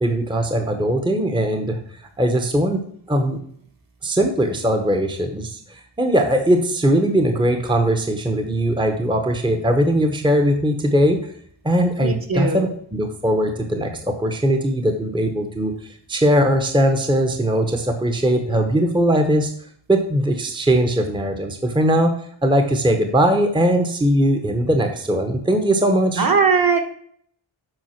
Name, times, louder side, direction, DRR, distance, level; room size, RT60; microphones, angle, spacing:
voice 1, 0.0-1.8 2.2-2.8 3.1-3.4 4.0-11.2 11.6-13.9 14.2-15.7 16.1-19.5 19.9-22.1 22.4-26.3, right 1 dB, 10° right, 4 dB, 0.8 m, -20 dB
voice 2, 12.0-12.7 26.2-26.8, right 5 dB, 45° right, 3 dB, 1.4 m, -19 dB
7.9 x 5.1 x 5.7 m, 0.62 s
wide cardioid pair, 140°, 48 cm